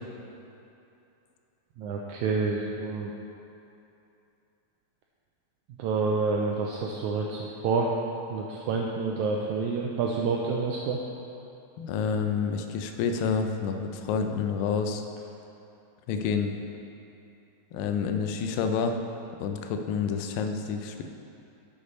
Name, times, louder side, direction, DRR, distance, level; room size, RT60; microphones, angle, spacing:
voice 1, 1.8-3.1 5.8-7.9 8.3-11.0, right 4 dB, 90° right, -1 dB, 1.7 m, -28 dB
voice 2, 11.8-15.0 16.1-16.5 17.7-19.0 19.4-21.0, left 6 dB, 90° left, 6 dB, 2.3 m, -28 dB
6.9 x 6.6 x 5.3 m, 2.8 s
omnidirectional pair, 3.9 m